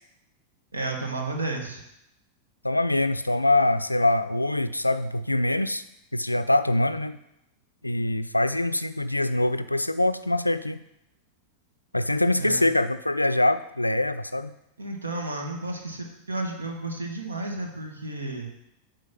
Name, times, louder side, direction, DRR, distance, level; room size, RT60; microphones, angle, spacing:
voice 1, 0.7-1.8 12.3-12.7 14.8-18.5, right 2 dB, 75° right, 2 dB, 1.3 m, -32 dB
voice 2, 2.6-5.8 6.1-7.2 7.8-10.8 11.9-14.5, left 2 dB, 85° left, 11 dB, 0.3 m, -24 dB
9.4 x 3.6 x 5.9 m, 0.83 s
figure-of-eight pair, 90°, 0 cm